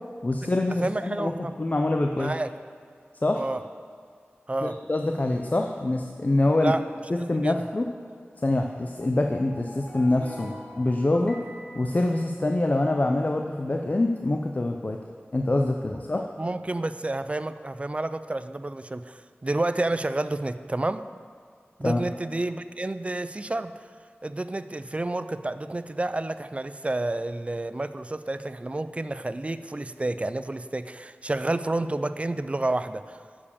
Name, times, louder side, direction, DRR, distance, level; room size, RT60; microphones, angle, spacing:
voice 1, 0.2-2.3 3.2-3.4 4.6-6.7 7.1-7.9 8.4-11.4 11.8-15.0 15.3-16.3 21.8-22.0, left 2 dB, 40° left, 3 dB, 0.4 m, -25 dB
voice 2, 0.8-1.5 2.2-2.5 3.4-3.6 4.5-4.8 6.6-6.8 7.2-7.6 16.4-21.1 21.8-23.7 24.2-33.2, right 2 dB, 30° right, 12 dB, 0.3 m, -30 dB
sound 1, 8.9-12.9, equal, 25° left, 1.1 m, -45 dB
7.1 x 4.8 x 6.9 m, 2.1 s
wide cardioid pair, 60°, 4 cm